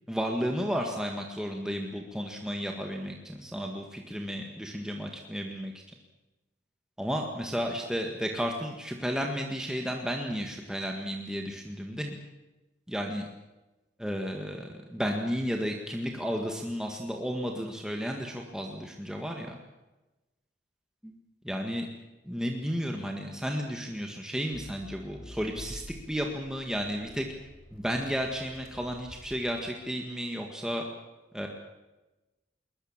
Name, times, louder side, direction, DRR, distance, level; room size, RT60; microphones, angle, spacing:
voice 1, 0.1-5.7 7.0-12.2 12.9-13.3 14.0-19.6 21.4-21.9 22.3-27.3 27.7-30.8 31.3-31.5, equal, 5° right, 2 dB, 1.8 m, -33 dB
Accelerating revving vroom, 24.5-29.9, equal, 55° left, 5.8 m, -49 dB
21.5 x 21.0 x 7.4 m, 1.1 s
head